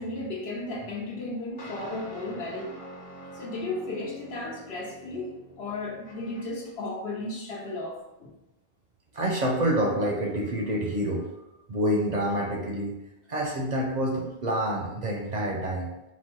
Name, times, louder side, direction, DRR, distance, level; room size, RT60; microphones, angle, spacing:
voice 1, 0.0-2.8 3.3-8.3, left 2 dB, 75° left, -3 dB, 1.2 m, -35 dB
sound 1, 1.6-6.7, equal, 55° left, 0.9 m, -46 dB
voice 2, 9.1-11.3 11.7-13.0 13.3-15.9, equal, 50° right, -1 dB, 0.6 m, -27 dB
4.1 x 2.2 x 4.5 m, 0.97 s
omnidirectional pair, 1.1 m